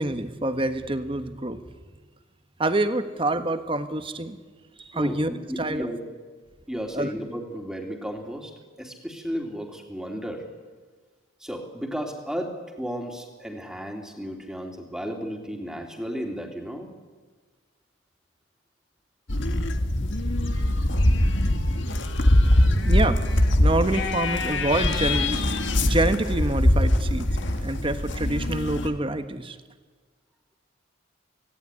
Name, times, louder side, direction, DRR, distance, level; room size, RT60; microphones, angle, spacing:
voice 1, 0.0-1.6 2.6-4.4 4.8-5.9 6.9-7.1 22.8-23.2 23.6-25.4 25.8-27.3 27.6-29.6, right 1 dB, 25° right, 9 dB, 1.3 m, -26 dB
voice 2, 4.9-6.0 6.7-10.4 11.4-16.9, equal, 5° right, 2 dB, 3.0 m, -34 dB
sound 1, 19.3-28.9, left 1 dB, 60° left, 1.9 m, -22 dB
25.0 x 17.5 x 9.9 m, 1.4 s
head